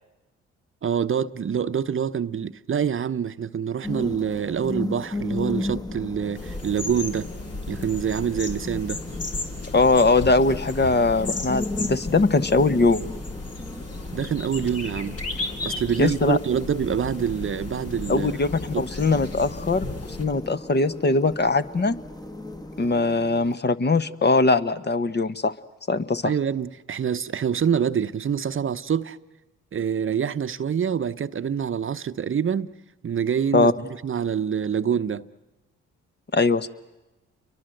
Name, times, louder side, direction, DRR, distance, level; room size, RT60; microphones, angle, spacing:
voice 1, 0.8-7.3 7.7-9.0 14.1-15.2 15.6-18.3 18.7-18.8 26.2-29.2 29.7-32.7 33.0-35.3, right 8 dB, 45° right, 0.9 m, -26 dB
sound 1, 3.8-23.6, left 2 dB, 15° left, 1.2 m, -36 dB
sound 2, 6.4-20.2, left 2 dB, 55° left, 3.3 m, -35 dB
voice 2, 9.7-13.0 16.0-16.4 18.1-18.5 18.8-22.0 22.8-25.5 25.9-26.3 33.5-33.7 36.3-36.7, left 3 dB, 35° left, 1.2 m, -21 dB
30.0 x 23.5 x 7.8 m
supercardioid pair, 60°, 30 cm